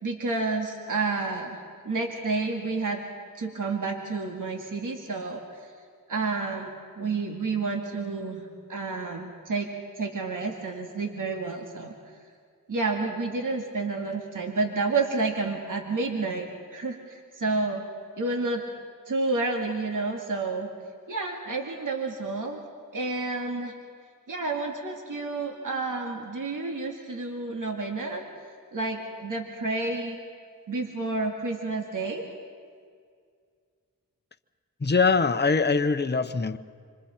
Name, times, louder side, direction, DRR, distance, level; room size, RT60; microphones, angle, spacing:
voice 1, 0.0-3.0 3.4-5.7 6.1-9.7 10.0-11.9 12.7-17.8 18.2-18.6 19.1-20.7 21.1-22.6 22.9-23.7 24.3-28.2 28.7-30.2 30.7-32.2, right 3 dB, 65° right, 2.4 m, -30 dB
voice 2, 34.8-36.6, left 4 dB, 30° left, 1.0 m, -23 dB
27.0 x 26.0 x 4.5 m
cardioid pair, 50°, 35 cm